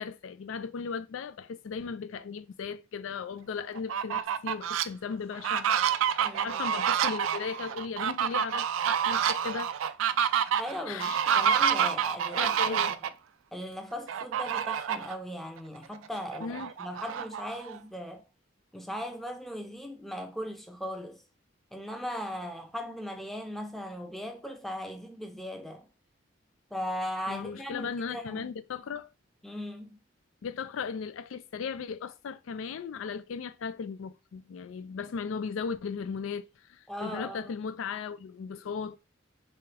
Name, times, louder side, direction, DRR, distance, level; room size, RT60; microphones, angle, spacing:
voice 1, 0.0-5.7 6.2-9.7 10.9-11.2 12.3-12.9 16.4-16.7 27.3-29.1 30.4-39.0, left 6 dB, 85° left, 0.4 m, -37 dB
Fowl, 3.8-4.8 5.3-13.1 14.1-15.1 15.6-15.7 16.0-17.8, right 8 dB, 80° right, 0.3 m, -28 dB
voice 2, 6.2-6.6 10.6-12.8 13.5-18.2 18.7-21.2 21.7-25.9 26.7-28.5 29.4-30.0 36.9-37.5, equal, ahead, 0.5 m, -38 dB
3.5 x 3.2 x 2.9 m
head